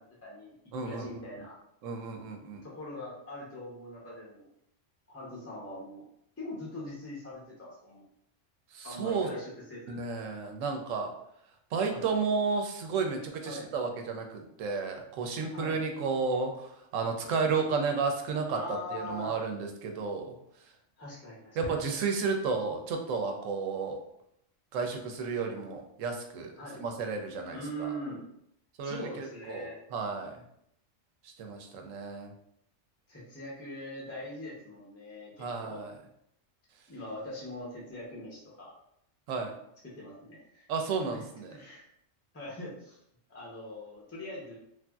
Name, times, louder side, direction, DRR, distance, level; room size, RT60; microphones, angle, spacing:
voice 1, 0.0-1.6 2.6-4.5 5.1-6.0 6.4-8.0 8.8-10.0 11.9-12.1 13.4-13.7 15.5-15.8 18.5-19.4 21.0-21.8 26.6-26.8 27.5-28.2 28.8-29.8 33.1-35.8 36.9-38.7 39.8-40.7 41.1-41.2 41.5-41.9 42.3-43.0 43.3-44.6, left 1 dB, 15° left, -4 dB, 0.5 m, -42 dB
voice 2, 0.7-1.2 1.8-2.6 8.7-9.3 9.9-11.1 11.7-20.4 21.6-24.0 24.7-27.9 28.8-30.4 31.2-32.3 35.4-35.9 39.3-39.6 40.7-41.5, right 4 dB, 90° right, 4 dB, 0.9 m, -32 dB
3.1 x 2.6 x 2.3 m, 0.75 s
omnidirectional pair, 1.3 m